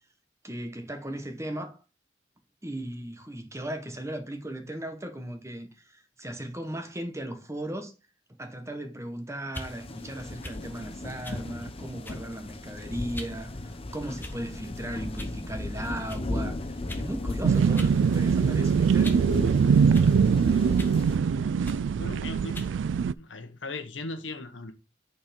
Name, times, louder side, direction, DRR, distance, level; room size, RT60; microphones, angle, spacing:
voice 1, 0.4-1.8 2.6-7.9 8.4-19.1, right 1 dB, 15° right, 1.3 m, -37 dB
sound 1, 9.5-9.7 10.4-10.6 11.2-11.4 12.0-12.3 13.1-13.4 14.2-14.6 15.2-15.4 16.1-16.2 16.9-17.1 17.8-18.0 18.3-19.3 19.9-20.1 20.8-21.0 21.6-21.8 22.5-22.7, left 1 dB, 10° left, 1.1 m, -41 dB
sound 2, 9.6-21.2, left 1 dB, 30° left, 0.8 m, -36 dB
sound 3, 17.4-23.1, right 6 dB, 75° right, 0.3 m, -22 dB
voice 2, 21.1-22.6 23.2-24.7, left 3 dB, 80° left, 1.3 m, -39 dB
8.4 x 4.7 x 5.2 m
head